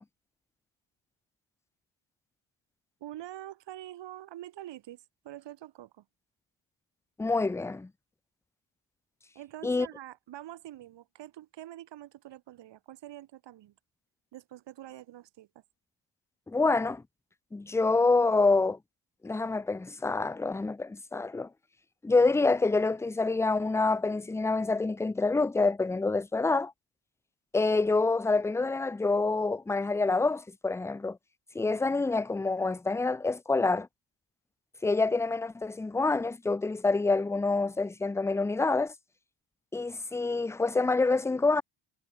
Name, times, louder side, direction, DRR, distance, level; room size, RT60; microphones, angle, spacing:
voice 1, 3.0-6.1 9.4-13.7 14.3-15.6, right 13 dB, 65° right, 1.6 m, -45 dB
voice 2, 7.2-7.9 9.6-9.9 16.5-17.0 17.5-18.8 19.2-21.5 22.0-26.7 27.5-31.2 31.5-33.9 34.8-38.9 39.7-41.6, left 3 dB, 5° left, 0.3 m, -27 dB
supercardioid pair, 75°, 46 cm